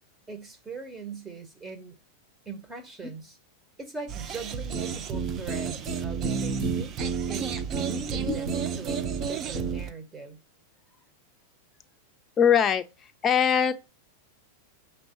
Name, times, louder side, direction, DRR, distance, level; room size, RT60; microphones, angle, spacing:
voice 1, 0.3-2.0 2.4-3.4 3.8-7.0 7.3-10.4, right 4 dB, 15° right, 1.2 m, -40 dB
sound 1, 4.1-9.9, right 7 dB, 35° right, 0.5 m, -35 dB
sound 2, 4.7-9.3 9.5-9.8, right 5 dB, 55° right, 1.5 m, -31 dB
voice 2, 12.4-13.7, left 8 dB, 25° left, 0.6 m, -22 dB
5.2 x 3.3 x 3.0 m
hypercardioid pair, 105°, 0 cm